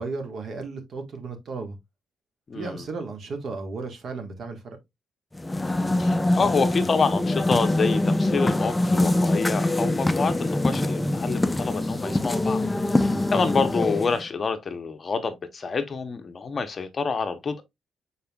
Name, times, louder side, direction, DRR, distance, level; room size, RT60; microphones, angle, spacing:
voice 1, 0.0-1.8 2.5-4.8 13.0-13.2, right 4 dB, 60° right, 1.4 m, -34 dB
voice 2, 2.5-2.8 6.0-12.6 13.0-17.6, left 4 dB, 40° left, 0.8 m, -27 dB
sound 1, 5.3-14.3, left 1 dB, 15° left, 0.4 m, -24 dB
5.4 x 4.3 x 2.3 m
cardioid pair, 90°, 0 cm